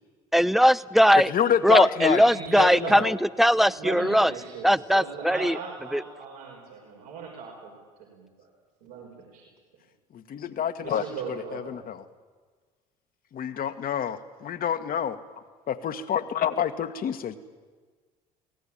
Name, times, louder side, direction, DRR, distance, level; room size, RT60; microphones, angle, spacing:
voice 1, 0.3-1.3 1.6-4.3 4.6-5.6 5.9-6.0, equal, ahead, 18 dB, 0.7 m, -20 dB
voice 2, 1.1-2.2 2.6-3.1 10.1-12.0 13.3-15.2 15.7-17.4, left 9 dB, 45° left, 8 dB, 1.7 m, -28 dB
voice 3, 2.0-3.1 3.5-7.7 8.1-8.5 8.8-9.4 10.8-11.8, right 5 dB, 75° right, -2 dB, 5.6 m, -38 dB
26.0 x 18.5 x 8.8 m, 1.5 s
hypercardioid pair, 60°, 20 cm